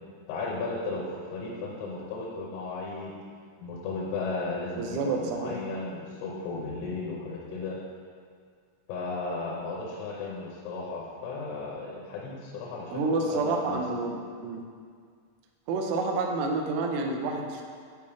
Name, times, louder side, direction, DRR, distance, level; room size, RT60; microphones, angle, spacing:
voice 1, 0.3-3.1 3.6-7.8 8.9-13.8, left 3 dB, 85° left, -4 dB, 3.2 m, -35 dB
voice 2, 4.8-5.6 12.9-14.6 15.7-17.6, right 3 dB, 85° right, 2 dB, 2.4 m, -29 dB
7.8 x 5.1 x 3.5 m, 2.1 s
omnidirectional pair, 5.5 m